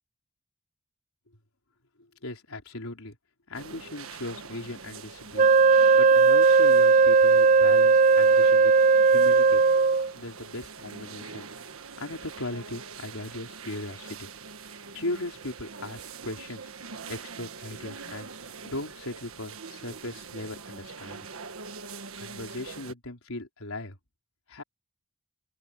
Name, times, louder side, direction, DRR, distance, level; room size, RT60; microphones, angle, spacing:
voice 1, 2.2-3.2 3.5-5.5 6.0-8.7 9.1-9.6 10.1-11.5 12.0-14.3 14.7-16.6 17.1-18.3 18.6-21.3 22.2-24.0 24.5-24.6, left 2 dB, 85° left, 4.1 m, -38 dB
sound 1, 3.5-22.9, right 5 dB, 80° right, 1.5 m, -43 dB
Wind instrument woodwind instrument, 5.4-10.1, right 4 dB, 35° right, 0.3 m, -18 dB
open air
head